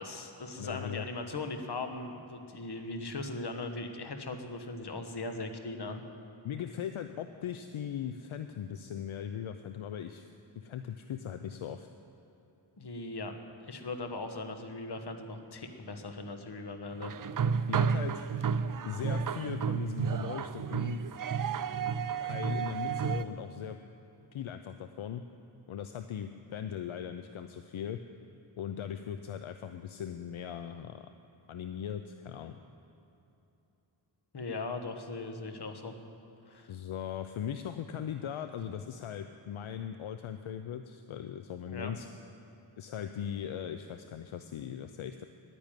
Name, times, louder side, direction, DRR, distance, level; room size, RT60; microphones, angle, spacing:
voice 1, 0.0-6.0 12.8-13.3 13.6-17.1 34.3-35.9 36.5-36.7 41.7-41.9, left 3 dB, 50° left, 6 dB, 1.5 m, -39 dB
voice 2, 0.6-1.1 6.4-10.3 10.6-11.9 17.7-18.2 18.8-21.0 21.8-21.9 22.2-23.8 24.3-25.2 25.7-28.0 28.6-31.1 31.5-32.6 36.7-42.1 42.8-45.2, left 9 dB, 75° left, 8 dB, 0.7 m, -39 dB
sound 1, 17.0-23.2, right 6 dB, 45° right, 0.5 m, -31 dB
11.0 x 9.9 x 9.1 m, 3.0 s
wide cardioid pair, 75°, 49 cm